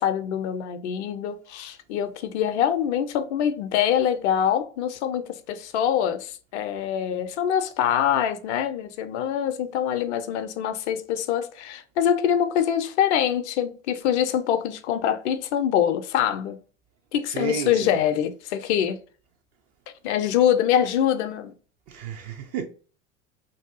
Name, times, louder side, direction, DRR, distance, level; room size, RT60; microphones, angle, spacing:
voice 1, 0.0-16.6 17.1-19.0 20.0-21.5, left 9 dB, 65° left, 0.5 m, -24 dB
voice 2, 17.3-18.0 21.9-22.7, right 7 dB, 40° right, 0.5 m, -32 dB
2.6 x 2.2 x 2.6 m
figure-of-eight pair, 75°, 37 cm